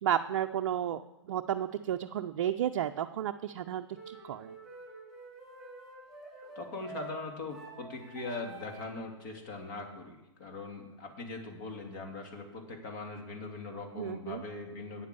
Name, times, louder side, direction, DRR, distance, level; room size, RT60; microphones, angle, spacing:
voice 1, 0.0-4.5 14.0-14.4, right 10 dB, 45° right, 6 dB, 0.5 m, -32 dB
sound 1, 3.9-9.0, right 3 dB, ahead, 3.4 m, -49 dB
voice 2, 6.5-15.1, left 3 dB, 45° left, 2 dB, 2.8 m, -41 dB
8.9 x 8.3 x 6.9 m, 1.0 s
hypercardioid pair, 135°, 16 cm